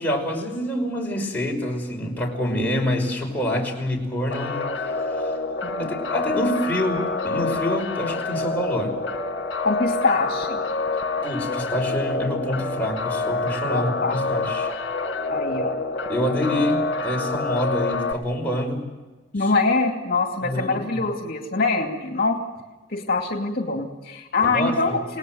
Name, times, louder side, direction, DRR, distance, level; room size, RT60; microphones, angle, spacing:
voice 1, 0.0-4.7 5.8-9.0 11.2-14.7 16.1-18.8 20.4-21.0 24.4-25.0, left 1 dB, 10° left, -2 dB, 5.7 m, -26 dB
sound 1, 4.3-18.1, left 3 dB, 70° left, 1.8 m, -27 dB
voice 2, 5.6-6.0 9.6-10.6 13.7-14.2 15.3-15.8 16.5-16.6 19.3-22.4 22.9-25.2, left 3 dB, 55° left, 2 dB, 2.5 m, -24 dB
29.0 x 19.0 x 7.9 m, 1.2 s
head